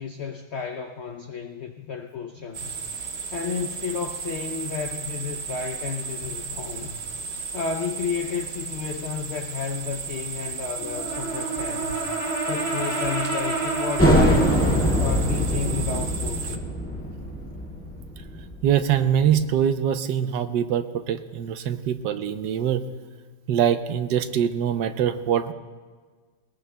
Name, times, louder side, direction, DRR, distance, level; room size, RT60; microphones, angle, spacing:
voice 1, 0.0-2.8 3.3-7.0 7.5-12.0 12.5-14.5 15.0-16.7, left 6 dB, 65° left, 5 dB, 0.6 m, -32 dB
sound 1, 2.5-16.6, right 6 dB, 55° right, 0.7 m, -34 dB
Brass instrument, 10.8-14.9, right 2 dB, 45° left, 3.3 m, -29 dB
sound 2, 14.0-19.3, equal, 5° left, 1.9 m, -23 dB
voice 2, 18.6-22.8 23.5-25.5, right 9 dB, 90° right, 10 dB, 1.3 m, -23 dB
20.5 x 20.0 x 2.2 m, 1.5 s
omnidirectional pair, 1.9 m